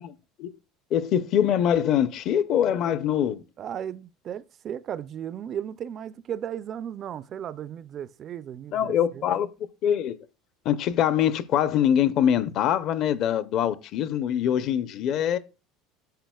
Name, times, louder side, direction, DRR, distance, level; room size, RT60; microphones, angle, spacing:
voice 1, 0.9-3.4 8.7-9.5 9.8-10.2 10.7-15.4, left 9 dB, 40° left, 0.5 m, -23 dB
voice 2, 3.6-9.3, right 9 dB, 30° right, 0.3 m, -35 dB
10.5 x 7.7 x 2.3 m
cardioid pair, 170°, 0 cm